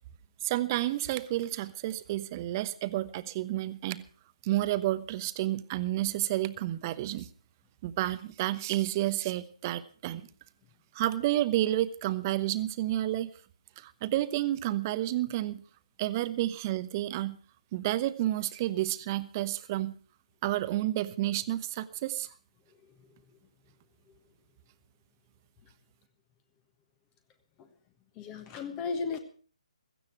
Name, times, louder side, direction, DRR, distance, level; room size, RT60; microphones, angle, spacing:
voice 1, 0.4-4.0 4.4-7.3 7.8-10.2 10.9-13.3 13.8-15.6 16.0-17.4 17.7-19.9 20.4-22.3, right 15 dB, 30° right, 14 dB, 0.9 m, -30 dB
voice 2, 28.2-29.2, left 4 dB, 20° left, 9 dB, 1.3 m, -35 dB
16.5 x 14.5 x 4.6 m, 0.40 s
figure-of-eight pair, 140°, 4 cm